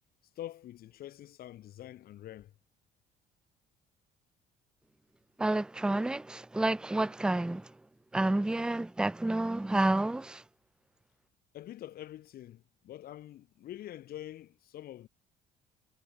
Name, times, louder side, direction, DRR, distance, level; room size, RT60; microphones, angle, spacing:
voice 1, 0.4-2.5 11.5-15.1, left 13 dB, 65° left, 1.5 m, -45 dB
voice 2, 5.4-7.7 8.1-10.4, right 2 dB, 5° right, 0.5 m, -29 dB
cardioid pair, 110°, 17 cm